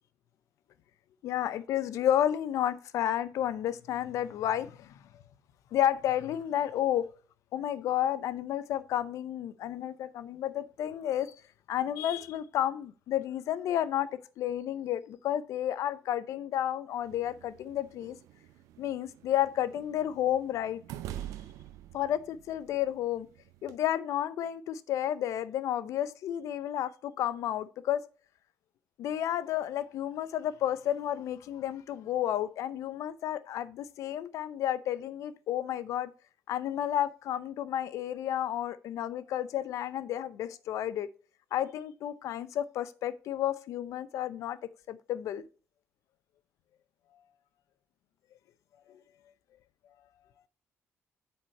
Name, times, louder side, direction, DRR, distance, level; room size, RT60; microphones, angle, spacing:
voice 1, 1.2-5.0 5.7-7.1 7.5-11.3 11.7-18.2 18.8-20.8 21.9-23.3 23.6-28.1 29.0-36.1 36.5-41.1 41.5-44.6 44.9-45.4 48.9-49.0, left 11 dB, 80° left, 0.6 m, -31 dB
sound 1, 17.1-23.8, right 12 dB, 85° right, 0.6 m, -47 dB
7.3 x 4.5 x 4.2 m
cardioid pair, 75°, 5 cm